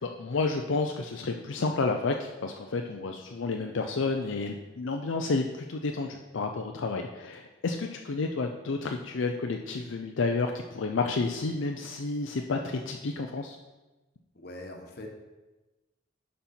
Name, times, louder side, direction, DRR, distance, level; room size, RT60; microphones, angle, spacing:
voice 1, 0.0-13.6, left 3 dB, 80° left, 3 dB, 0.5 m, -30 dB
voice 2, 14.3-15.1, left 1 dB, 55° left, 2 dB, 1.2 m, -42 dB
11.0 x 4.3 x 4.3 m, 1.1 s
head